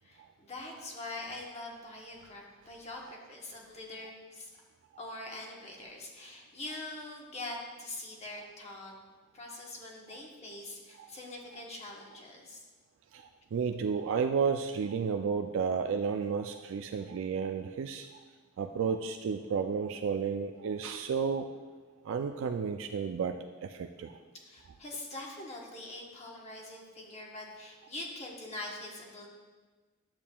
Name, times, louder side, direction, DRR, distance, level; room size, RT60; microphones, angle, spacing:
voice 1, 0.0-4.5 5.0-8.9 9.3-12.6 24.3-29.3, left 2 dB, 35° left, -1 dB, 1.1 m, -43 dB
voice 2, 13.1-18.1 18.6-21.5 22.0-24.1, right 6 dB, 70° right, 6 dB, 0.3 m, -32 dB
10.5 x 7.3 x 2.3 m, 1.3 s
head